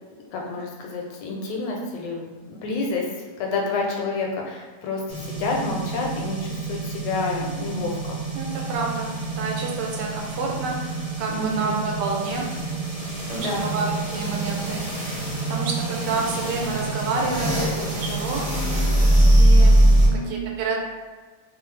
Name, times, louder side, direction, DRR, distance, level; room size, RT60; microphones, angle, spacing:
voice 1, 0.3-3.1 3.4-8.2 11.3-11.8 13.3-13.7 20.1-20.4, left 3 dB, 85° left, 0 dB, 1.3 m, -29 dB
sound 1, 5.1-20.1, right 1 dB, 10° right, 0.4 m, -23 dB
voice 2, 8.3-12.4 13.3-15.2 15.5-18.4 19.4-19.7 20.3-20.8, right 3 dB, 85° right, -1 dB, 1.2 m, -29 dB
3.1 x 2.0 x 3.1 m, 1.4 s
omnidirectional pair, 1.9 m